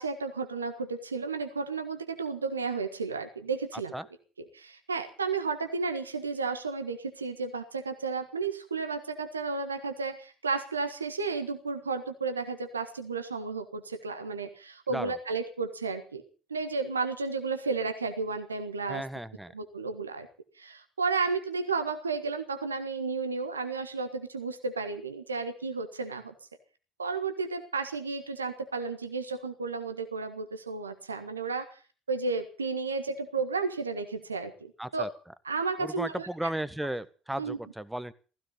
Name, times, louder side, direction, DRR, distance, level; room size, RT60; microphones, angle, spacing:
voice 1, 0.0-3.9 4.5-16.2 16.5-19.0 19.5-20.3 20.6-26.3 27.0-31.8 32.1-35.1 35.4-36.3 37.4-37.6, right 4 dB, 85° right, 1.5 m, -33 dB
voice 2, 18.9-19.5 34.8-35.1 35.8-38.1, right 1 dB, 5° right, 1.5 m, -35 dB
16.5 x 15.5 x 5.6 m
figure-of-eight pair, 55°, 0 cm